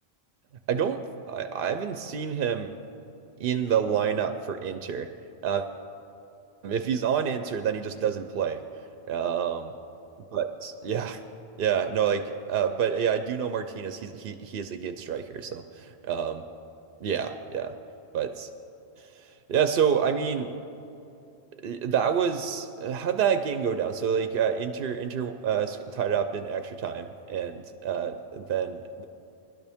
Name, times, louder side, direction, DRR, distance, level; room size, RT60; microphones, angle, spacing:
voice 1, 0.7-1.0 1.3-2.7 3.4-5.1 5.4-5.7 6.6-8.6 9.1-9.7 10.3-11.2 11.6-16.4 17.0-17.7 18.1-18.5 19.0-20.5 21.6-29.1, right 7 dB, 65° right, 8 dB, 0.7 m, -28 dB
19.5 x 12.0 x 3.5 m, 2.9 s
omnidirectional pair, 1.1 m